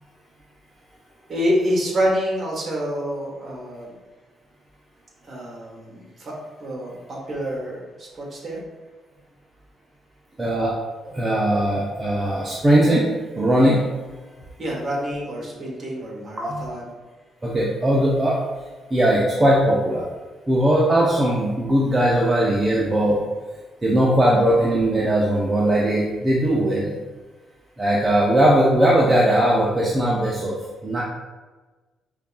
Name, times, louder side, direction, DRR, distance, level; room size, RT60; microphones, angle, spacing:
voice 1, 1.3-3.9 5.3-6.3 6.6-8.6 14.6-16.8, equal, 45° right, -3 dB, 1.3 m, -27 dB
voice 2, 10.4-10.7 11.0-13.9 16.4-16.7 17.4-18.4 18.9-20.0 20.5-23.2 23.8-26.9 27.8-30.6 30.8-31.0, right 1 dB, 20° right, -4 dB, 0.5 m, -19 dB
5.1 x 2.4 x 2.3 m, 1.3 s
cardioid pair, 90°, 0 cm